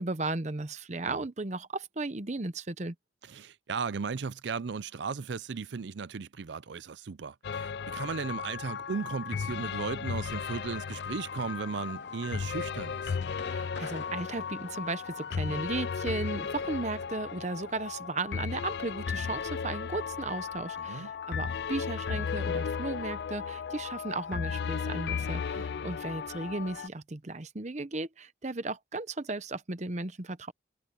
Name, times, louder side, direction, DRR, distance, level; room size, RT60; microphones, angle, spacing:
voice 1, 0.0-2.9 13.4-30.5, right 2 dB, 35° right, 0.8 m, -35 dB
voice 2, 3.3-13.2 20.8-21.1, right 5 dB, 70° right, 0.5 m, -36 dB
sound 1, 7.4-26.9, left 6 dB, 60° left, 0.3 m, -35 dB
sound 2, 10.2-17.0, left 3 dB, 75° left, 2.8 m, -50 dB
head